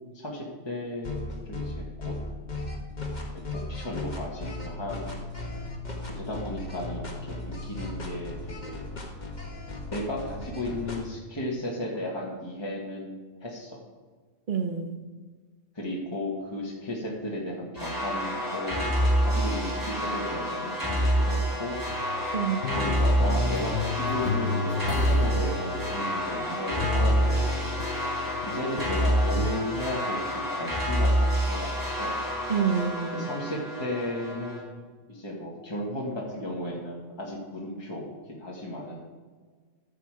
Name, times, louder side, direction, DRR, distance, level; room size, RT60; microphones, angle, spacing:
voice 1, 0.1-2.1 3.7-5.1 6.1-7.3 7.6-8.9 9.9-13.8 15.7-21.8 22.7-27.6 28.4-32.2 33.1-34.8 35.1-39.0, left 1 dB, 25° left, -4 dB, 1.6 m, -34 dB
sound 1, 1.1-11.0, left 2 dB, 40° left, 1.7 m, -36 dB
voice 2, 14.5-15.0 22.3-22.7 32.5-33.3, right 7 dB, 50° right, 7 dB, 1.0 m, -27 dB
sound 2, 17.8-34.6, equal, 20° right, 4.1 m, -27 dB
sound 3, 21.9-26.4 26.7-29.7, left 6 dB, 75° left, 0.9 m, -34 dB
13.5 x 6.8 x 4.9 m, 1.5 s
omnidirectional pair, 1.1 m